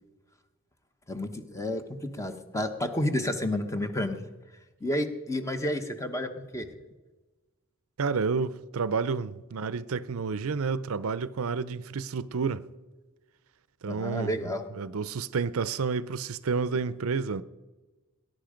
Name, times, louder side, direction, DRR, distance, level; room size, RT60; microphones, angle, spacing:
voice 1, 1.1-4.2 4.8-6.7 13.9-14.7, left 1 dB, 15° left, 1.1 m, -31 dB
voice 2, 8.0-12.6 13.8-14.3 14.8-17.4, right 5 dB, 70° right, 0.5 m, -30 dB
19.5 x 10.5 x 5.1 m
head